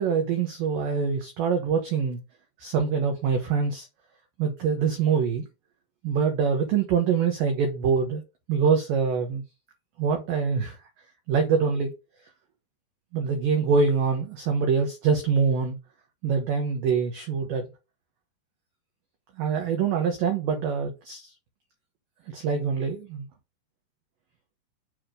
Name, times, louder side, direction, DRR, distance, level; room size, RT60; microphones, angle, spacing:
voice 1, 0.0-2.2 2.6-3.9 4.4-5.5 6.0-8.2 8.5-9.4 10.0-10.8 11.3-11.9 13.1-15.8 16.2-17.7 19.4-21.3 22.3-23.3, right 6 dB, 80° right, 2.0 m, -24 dB
7.1 x 3.0 x 5.0 m
omnidirectional pair, 5.2 m